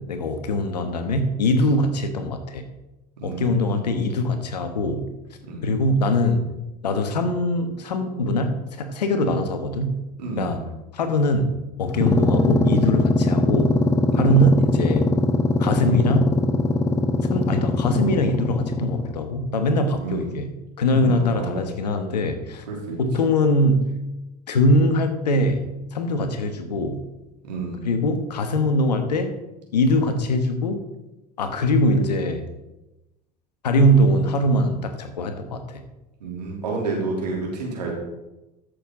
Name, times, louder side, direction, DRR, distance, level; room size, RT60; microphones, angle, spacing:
voice 1, 0.0-2.7 3.2-5.1 5.6-6.5 6.8-10.0 10.4-10.6 10.9-13.8 14.1-15.1 15.6-16.4 17.3-22.6 23.0-24.0 24.5-27.1 27.8-29.4 29.7-30.8 31.4-32.5 33.6-35.8, left 1 dB, 85° left, 8 dB, 1.2 m, -22 dB
voice 2, 3.2-3.8 5.4-5.6 10.2-10.6 14.1-14.4 20.0-20.3 20.9-21.7 22.7-23.0 27.4-27.9 36.2-37.9, right 3 dB, 85° right, -2 dB, 3.1 m, -30 dB
sound 1, 11.9-19.2, left 2 dB, 15° left, 1.0 m, -21 dB
13.5 x 6.6 x 3.7 m, 1.0 s
hypercardioid pair, 80°, 20 cm